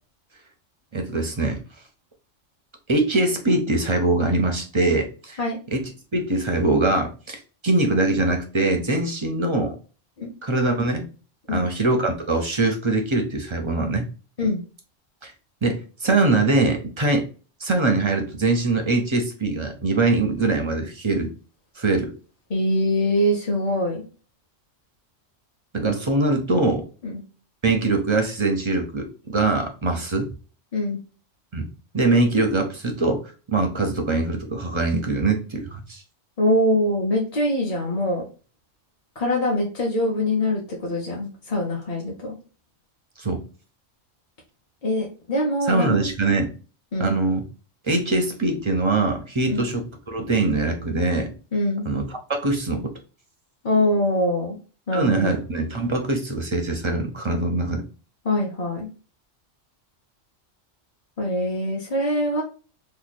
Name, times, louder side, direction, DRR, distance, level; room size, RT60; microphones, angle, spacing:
voice 1, 0.9-1.6 2.9-5.4 5.7-9.7 10.4-11.0 11.5-14.0 15.2-15.3 15.6-17.3 17.6-21.3 21.8-22.1 25.7-26.8 27.6-30.3 31.5-31.7 31.9-33.2 33.5-36.0 43.2-43.4 45.7-46.5 47.0-47.4 47.8-51.3 51.9-52.0 52.3-52.9 54.9-57.8, right 2 dB, 40° right, 4 dB, 0.4 m, -22 dB
voice 2, 22.5-24.0 27.0-27.2 30.7-31.0 36.4-38.2 39.2-42.4 44.8-46.0 46.9-47.1 49.4-49.6 51.5-51.8 53.6-54.6 54.9-55.4 58.2-58.9 61.2-62.4, left 1 dB, 35° left, -3 dB, 0.7 m, -23 dB
3.1 x 2.3 x 4.0 m, 0.36 s
omnidirectional pair, 1.3 m